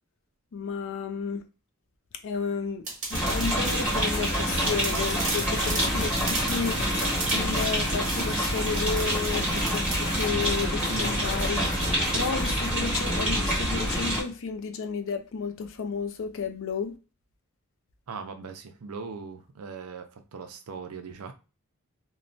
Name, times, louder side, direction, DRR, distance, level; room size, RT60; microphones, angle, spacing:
voice 1, 0.5-1.4 2.2-2.8 3.1-16.9, left 5 dB, 60° left, 0.4 m, -32 dB
sound 1, 2.8-10.3, right 3 dB, 35° right, 1.0 m, -37 dB
sound 2, 3.1-14.2, equal, 5° right, 1.3 m, -27 dB
sound 3, 3.9-13.1, left 2 dB, 35° left, 0.8 m, -39 dB
voice 2, 18.1-21.3, right 5 dB, 75° right, 0.5 m, -40 dB
3.0 x 2.1 x 2.6 m
head